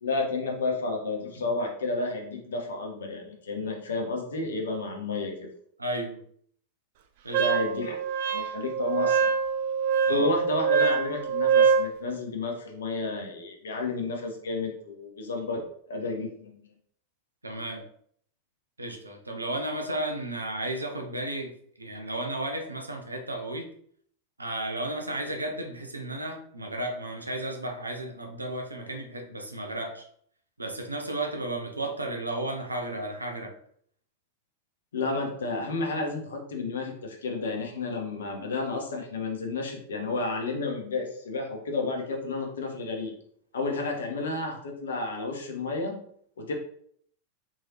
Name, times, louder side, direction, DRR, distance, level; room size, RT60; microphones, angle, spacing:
voice 1, 0.0-5.5 7.4-8.0 8.3-9.3 10.1-16.7 34.9-43.1 43.5-46.0 46.4-46.5, left 3 dB, 65° left, 2 dB, 0.9 m, -31 dB
voice 2, 5.8-6.2 7.2-7.4 10.1-10.3 17.4-17.9 18.8-23.7 24.4-30.0 30.6-33.6, right 1 dB, 80° right, 3 dB, 0.7 m, -33 dB
Wind instrument woodwind instrument, 7.3-11.9, right 6 dB, 50° right, 0.4 m, -24 dB
3.6 x 3.2 x 2.8 m, 0.63 s
figure-of-eight pair, 90°, 0 cm